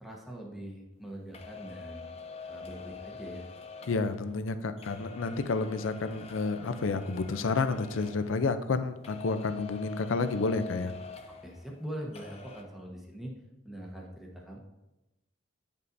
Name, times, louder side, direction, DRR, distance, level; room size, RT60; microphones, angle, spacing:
voice 1, 0.0-2.1 2.5-3.5 11.3-13.3 13.6-14.6, equal, ahead, -2 dB, 0.9 m, -42 dB
sound 1, 1.3-8.8 9.0-11.9 12.1-12.6, left 5 dB, 30° left, 0.5 m, -46 dB
voice 2, 3.9-10.9, left 3 dB, 80° left, 10 dB, 0.5 m, -30 dB
9.6 x 5.4 x 2.6 m, 0.99 s
head